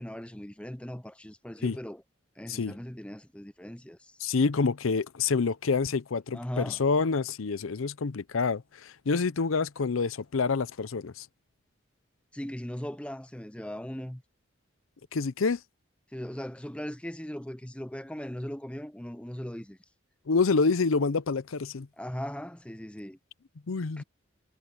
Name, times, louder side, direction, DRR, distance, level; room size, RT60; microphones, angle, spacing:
voice 1, 0.0-2.0 2.4-4.2 6.3-6.8 12.3-14.2 16.1-19.8 22.0-23.2 24.0-24.1, equal, 5° left, 0.7 m, -39 dB
voice 2, 4.2-11.3 15.1-15.6 20.3-21.9 23.7-24.0, left 4 dB, 90° left, 0.6 m, -27 dB
head